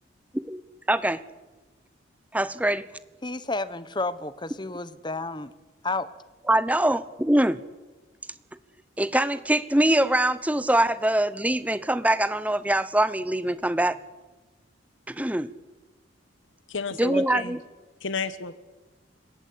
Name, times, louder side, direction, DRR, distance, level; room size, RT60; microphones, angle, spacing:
voice 1, 0.9-1.2 2.3-2.8 6.5-7.6 9.0-14.0 15.1-15.5 17.0-17.6, right 1 dB, 5° right, 14 dB, 0.9 m, -23 dB
voice 2, 3.2-5.5 5.8-6.1, left 3 dB, 20° left, 14 dB, 1.2 m, -31 dB
voice 3, 16.7-17.6 18.0-18.6, left 4 dB, 70° left, 13 dB, 1.3 m, -31 dB
29.5 x 17.0 x 8.7 m, 1.2 s
head